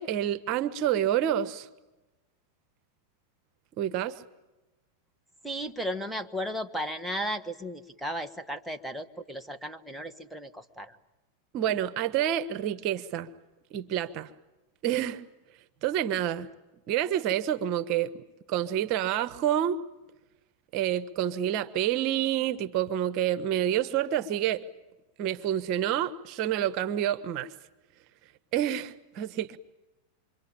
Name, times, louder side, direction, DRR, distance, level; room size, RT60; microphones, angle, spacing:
voice 1, 0.0-1.7 3.8-4.1 11.5-13.3 13.7-14.3 14.8-15.2 15.8-16.5 16.9-18.1 18.5-19.8 20.7-24.6 25.2-27.5 28.5-29.6, right 11 dB, 50° right, 14 dB, 1.2 m, -28 dB
voice 2, 5.4-10.9, equal, ahead, 4 dB, 1.5 m, -35 dB
27.0 x 24.0 x 8.8 m, 1.0 s
hypercardioid pair, 110°, 0 cm